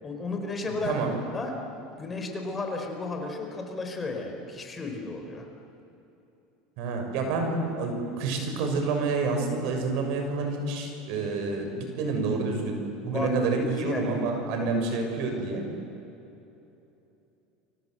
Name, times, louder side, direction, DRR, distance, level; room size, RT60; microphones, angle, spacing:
voice 1, 0.0-1.0 1.3-1.6 2.0-5.5 13.1-13.3 13.6-14.1 14.6-14.7, left 3 dB, 20° left, 3 dB, 4.8 m, -33 dB
voice 2, 0.7-1.1 6.8-12.7 13.0-15.6, right 3 dB, 65° right, 3 dB, 6.7 m, -28 dB
30.0 x 25.0 x 8.0 m, 2.9 s
supercardioid pair, 120°, 0 cm